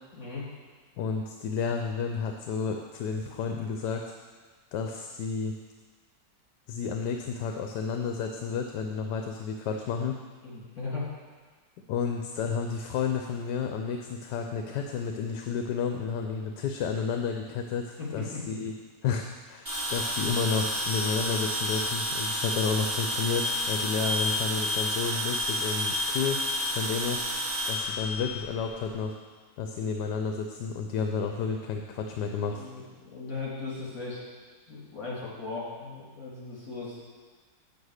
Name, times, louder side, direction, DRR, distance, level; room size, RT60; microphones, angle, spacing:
voice 1, 0.1-0.5 10.4-11.0 18.0-18.4 32.5-34.2 34.7-37.0, left 3 dB, 55° left, -6 dB, 3.5 m, -37 dB
voice 2, 1.0-4.0 4.7-5.5 6.7-10.2 11.9-18.7 19.0-26.4 26.7-27.2 27.7-29.2 29.6-32.7, left 5 dB, 80° left, 4 dB, 1.3 m, -31 dB
sound 1, 19.7-28.9, equal, 30° right, 3.1 m, -30 dB
8.7 x 7.2 x 6.4 m, 1.4 s
omnidirectional pair, 1.9 m